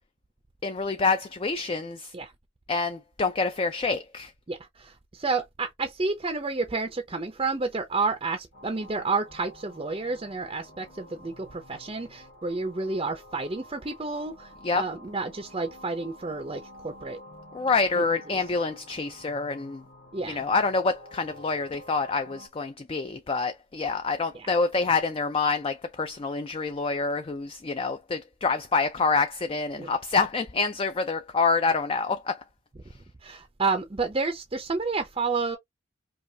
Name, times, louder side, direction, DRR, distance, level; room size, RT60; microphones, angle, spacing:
voice 1, 0.6-2.1 2.7-4.3 14.6-14.9 17.5-19.8 20.2-32.4, left 4 dB, 25° left, 0.3 m, -27 dB
voice 2, 4.5-17.2 18.0-18.1 20.1-20.5 24.3-24.5 29.8-29.9 33.2-35.6, right 3 dB, 25° right, 0.5 m, -30 dB
sound 1, 8.5-22.5, left 1 dB, 45° left, 1.3 m, -50 dB
5.3 x 2.4 x 2.7 m
head